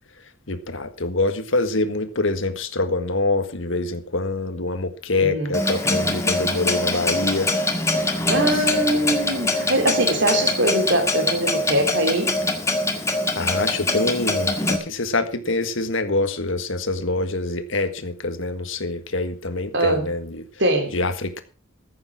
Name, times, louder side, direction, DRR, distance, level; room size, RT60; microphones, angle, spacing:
voice 1, 0.5-7.5 8.5-8.6 13.3-20.4 20.9-21.4, left 2 dB, 65° left, 1.7 m, -25 dB
voice 2, 5.1-5.6 8.0-12.4 19.7-20.1 20.6-20.9, right 1 dB, 55° right, 3.2 m, -22 dB
Clock, 5.5-14.8, left 2 dB, 15° left, 1.8 m, -23 dB
15.0 x 8.6 x 6.0 m
head